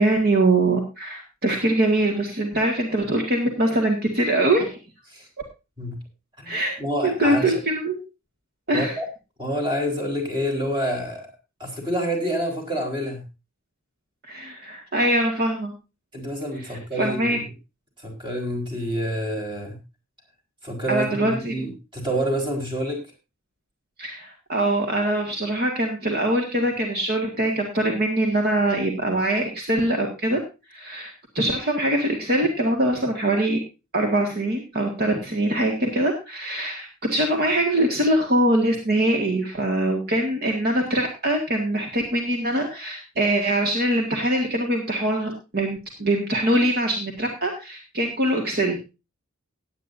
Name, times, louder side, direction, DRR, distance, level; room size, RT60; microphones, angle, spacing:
voice 1, 0.0-4.8 6.4-6.7 7.0-8.0 8.7-9.0 14.3-15.7 16.6-17.4 20.9-21.5 24.0-30.4 30.7-33.6 33.9-48.8, right 1 dB, 50° right, 2 dB, 1.9 m, -23 dB
voice 2, 6.4-7.6 8.7-9.1 9.4-11.3 11.6-13.2 16.1-17.4 18.0-19.8 20.6-23.0, equal, 25° right, 2 dB, 4.3 m, -28 dB
18.0 x 9.2 x 2.6 m, 0.27 s
head